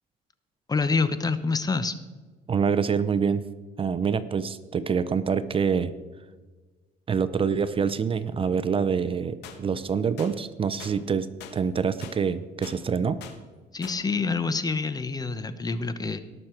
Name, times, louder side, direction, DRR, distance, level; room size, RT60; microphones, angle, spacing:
voice 1, 0.7-1.9 13.7-16.2, left 4 dB, 25° left, 12 dB, 0.8 m, -27 dB
voice 2, 2.5-3.5 3.8-5.9 7.1-13.2, right 6 dB, 30° right, 14 dB, 0.6 m, -26 dB
sound 1, 9.4-9.6 10.2-10.3 10.8-11.0 11.4-11.6 12.0-12.2 12.6-12.8 13.2-13.4 13.8-14.0, left 9 dB, 85° left, 1.5 m, -42 dB
19.0 x 6.5 x 4.5 m, 1.3 s
cardioid pair, 110°, 17 cm